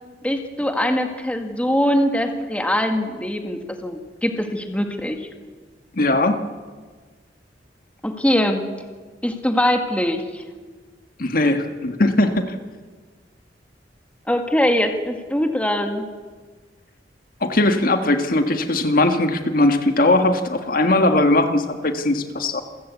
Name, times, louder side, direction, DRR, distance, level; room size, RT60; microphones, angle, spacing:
voice 1, 0.2-5.2 8.0-8.6 9.2-10.4 14.3-16.1, left 1 dB, 5° left, 5 dB, 1.9 m, -22 dB
voice 2, 5.9-6.4 11.2-12.5 17.4-22.6, left 2 dB, 55° left, 7 dB, 1.7 m, -19 dB
27.5 x 15.5 x 8.3 m, 1.4 s
head